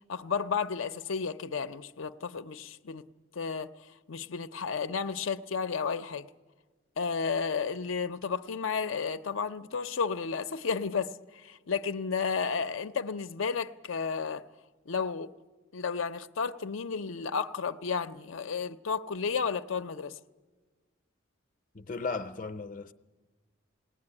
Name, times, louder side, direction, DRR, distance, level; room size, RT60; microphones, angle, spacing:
voice 1, 0.1-3.1 3.4-3.7 4.1-6.3 7.0-14.5 14.9-15.3 15.7-20.2, left 5 dB, 85° left, 0.6 m, -32 dB
voice 2, 21.7-22.9, left 4 dB, 40° left, 0.6 m, -36 dB
20.5 x 17.5 x 9.8 m
head